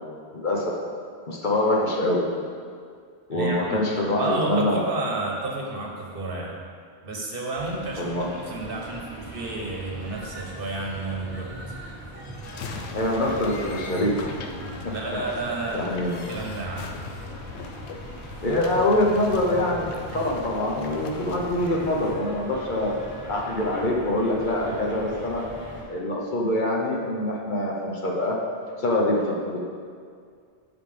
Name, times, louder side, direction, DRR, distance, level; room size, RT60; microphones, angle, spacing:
voice 1, 0.3-0.7 1.3-2.2 3.3-4.8 8.0-8.3 12.9-14.3 15.7-16.2 18.4-22.9 23.3-25.4 25.9-28.4 28.8-29.6, left 1 dB, 50° left, -2 dB, 1.0 m, -24 dB
voice 2, 3.3-6.6 7.0-11.8 14.9-15.9 16.3-17.0 20.1-20.3, right 2 dB, 60° right, -1 dB, 1.2 m, -31 dB
sound 1, 7.5-25.8, right 1 dB, 10° right, 1.5 m, -41 dB
sound 2, 12.2-22.1, left 5 dB, 85° left, 0.9 m, -40 dB
9.0 x 6.1 x 3.4 m, 2.2 s
omnidirectional pair, 1.1 m